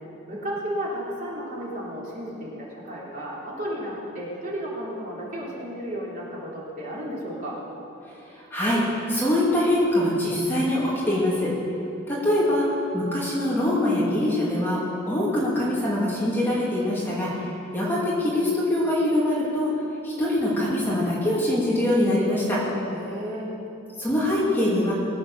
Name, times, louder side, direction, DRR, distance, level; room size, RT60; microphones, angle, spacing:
voice 1, 0.3-7.6 22.9-23.5, equal, 40° right, -6 dB, 3.5 m, -33 dB
voice 2, 8.3-11.5 12.1-14.8 15.1-22.6 24.0-24.9, left 1 dB, 10° left, -7 dB, 2.5 m, -23 dB
20.5 x 8.1 x 6.8 m, 2.9 s
head